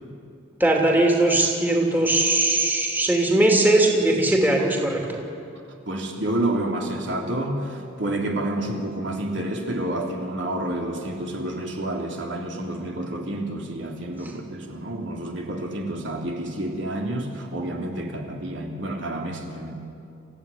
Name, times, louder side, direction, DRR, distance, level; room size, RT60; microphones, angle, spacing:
voice 1, 0.6-5.2, right 2 dB, 10° right, 0 dB, 2.8 m, -20 dB
voice 2, 5.8-19.7, right 1 dB, 70° right, 1 dB, 3.4 m, -29 dB
29.0 x 15.5 x 10.0 m, 2.6 s
head